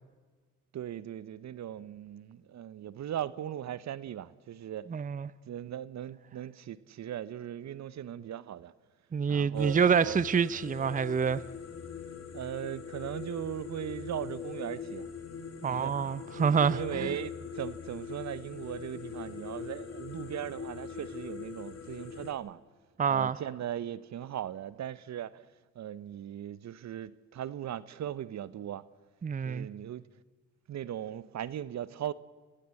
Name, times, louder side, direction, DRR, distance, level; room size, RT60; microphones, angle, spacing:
voice 1, 0.7-4.9 5.5-8.7 9.3-10.2 12.3-15.1 15.7-16.1 16.7-22.6 23.1-25.4 25.8-28.8 29.4-30.0 30.7-32.1, right 10 dB, 60° right, 0.9 m, -38 dB
voice 2, 4.9-5.3 9.1-11.4 15.6-17.1 23.0-23.4 29.2-29.7, right 6 dB, 25° right, 0.7 m, -27 dB
sound 1, 9.5-22.3, left 6 dB, 50° left, 2.7 m, -42 dB
30.0 x 15.5 x 7.7 m
supercardioid pair, 55°, 32 cm